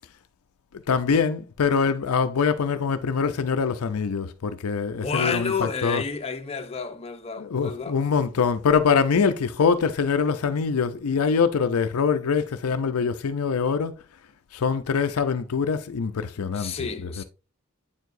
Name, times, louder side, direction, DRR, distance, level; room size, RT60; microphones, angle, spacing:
voice 1, 0.9-6.0 7.4-14.0 14.5-16.7 17.0-17.2, left 5 dB, 75° left, 0.5 m, -24 dB
voice 2, 4.9-8.0 16.5-17.2, left 5 dB, 30° left, 0.7 m, -30 dB
8.8 x 4.6 x 2.6 m
head